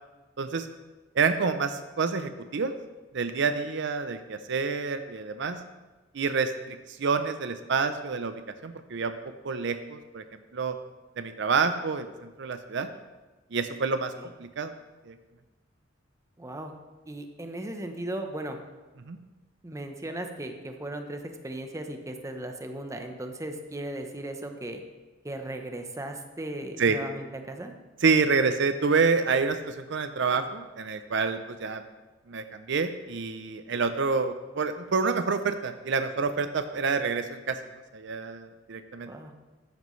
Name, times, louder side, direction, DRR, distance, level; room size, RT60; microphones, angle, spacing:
voice 1, 0.4-0.7 1.2-2.7 3.1-5.6 6.1-8.3 8.6-9.1 9.4-10.2 10.5-10.8 11.2-12.1 12.4-12.9 13.5-14.1 14.4-14.7 15.1-15.2 19.1-19.2 26.8-27.0 28.0-31.8 32.3-37.6 37.9-39.1, right 5 dB, 65° right, 9 dB, 0.6 m, -27 dB
voice 2, 16.4-16.7 17.0-18.6 19.6-24.8 25.2-27.7 39.1-39.3, right 1 dB, 15° right, 5 dB, 0.8 m, -37 dB
13.5 x 9.4 x 3.2 m, 1.2 s
head